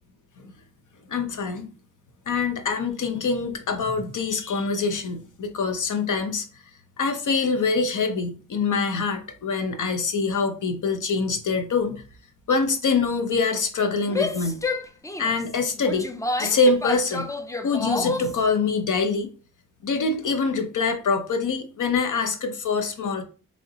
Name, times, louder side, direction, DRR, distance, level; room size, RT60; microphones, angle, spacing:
voice 1, 1.1-1.7 2.3-6.5 7.0-12.0 12.5-14.6 15.2-16.1 16.4-17.3 17.6-19.3 19.8-23.2, left 4 dB, 65° left, 7 dB, 0.7 m, -24 dB
Female speech woman speaking / Yell, 14.0-18.4, left 2 dB, 10° left, 0.4 m, -30 dB
3.7 x 3.1 x 2.8 m, 0.38 s
cardioid pair, 65°, 33 cm